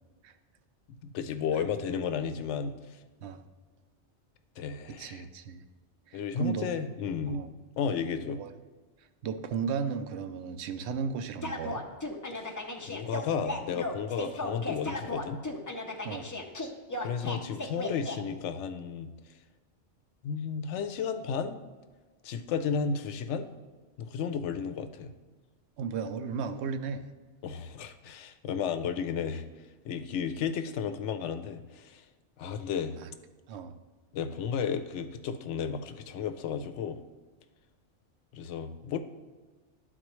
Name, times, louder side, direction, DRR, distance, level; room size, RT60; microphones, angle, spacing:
voice 1, 1.0-2.8 4.6-5.2 6.1-7.5 7.8-8.4 12.3-12.5 12.8-15.4 17.0-19.1 20.2-21.6 22.2-23.5 24.0-25.1 27.4-29.5 29.8-32.0 32.4-33.0 34.1-37.0 38.3-39.0, left 6 dB, 75° left, 9 dB, 0.9 m, -33 dB
voice 2, 4.9-5.6 6.1-6.7 7.2-7.5 8.3-8.5 9.0-11.8 16.0-16.4 25.8-27.1 33.0-33.1 33.5-33.8, right 6 dB, 70° right, 9 dB, 0.8 m, -35 dB
sound 1, 11.4-18.2, left 2 dB, 25° left, 0.4 m, -36 dB
11.5 x 4.2 x 3.1 m, 1.3 s
omnidirectional pair, 1.2 m